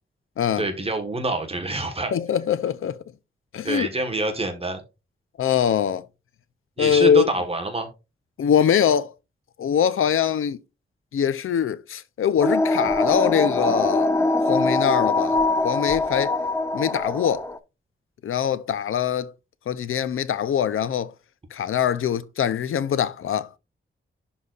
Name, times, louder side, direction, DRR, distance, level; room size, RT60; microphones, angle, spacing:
voice 1, 0.6-2.1 3.6-4.8 6.8-7.9, right 2 dB, 30° right, 1.2 m, -26 dB
voice 2, 2.1-3.0 3.5-3.9 5.4-6.1 6.8-7.3 8.4-9.1 9.6-10.6 11.1-14.1 14.5-16.4 16.7-17.5 18.2-19.3 19.7-21.1 21.5-23.6, left 8 dB, 85° left, 0.5 m, -23 dB
sound 1, 12.4-17.6, left 2 dB, 15° left, 0.4 m, -23 dB
11.0 x 4.0 x 2.4 m
wide cardioid pair, 140°, 21 cm